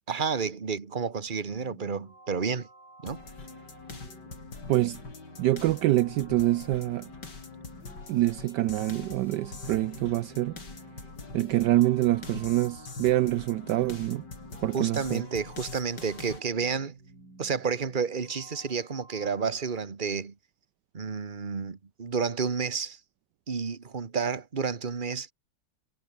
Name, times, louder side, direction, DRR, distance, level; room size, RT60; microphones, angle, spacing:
voice 1, 0.1-2.7 3.0-3.2 14.7-17.0 17.4-20.3 20.9-23.0 23.5-25.3, right 5 dB, 25° right, 1.5 m, -30 dB
sound 1, 1.5-19.8, right 2 dB, 55° right, 7.3 m, -53 dB
sound 2, 3.1-16.4, left 3 dB, 60° left, 4.7 m, -44 dB
voice 2, 4.7-5.0 5.4-7.1 8.1-10.6 11.3-14.2 14.6-15.2, right 15 dB, 75° right, 1.1 m, -25 dB
omnidirectional pair, 2.1 m